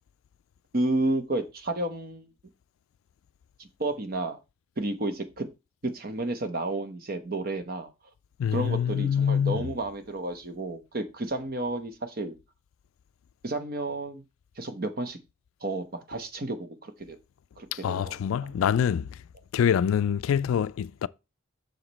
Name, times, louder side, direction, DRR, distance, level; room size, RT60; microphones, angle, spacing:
voice 1, 0.7-2.3 3.6-4.4 4.8-5.5 5.8-7.9 8.5-12.4 13.4-14.2 14.6-15.2 15.6-17.2 17.6-18.5, right 2 dB, 45° right, 0.9 m, -31 dB
voice 2, 8.4-9.7 17.8-19.1 19.5-21.1, left 8 dB, 75° left, 0.3 m, -25 dB
6.5 x 5.0 x 4.1 m
head